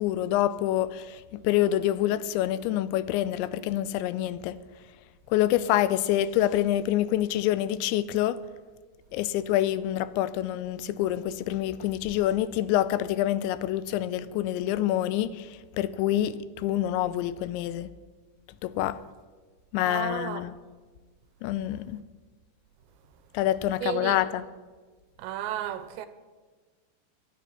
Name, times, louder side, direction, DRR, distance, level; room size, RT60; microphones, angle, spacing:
voice 1, 0.0-4.6 5.3-8.4 9.1-17.9 18.6-19.0 19.7-20.5 21.4-22.0 23.3-24.4, left 13 dB, 90° left, 3.0 m, -27 dB
voice 2, 19.9-20.4 23.8-24.2 25.2-26.1, right 12 dB, 85° right, 2.9 m, -33 dB
22.5 x 9.5 x 5.6 m
omnidirectional pair, 5.1 m